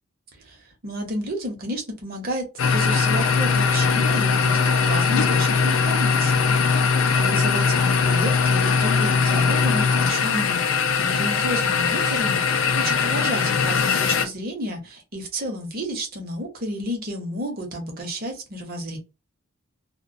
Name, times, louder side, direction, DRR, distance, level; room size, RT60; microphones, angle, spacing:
voice 1, 0.8-6.4 6.7-19.0, equal, 45° right, 2 dB, 0.7 m, -31 dB
sound 1, 2.6-14.3, left 5 dB, 65° left, 0.4 m, -20 dB
2.2 x 2.1 x 2.6 m, 0.28 s
head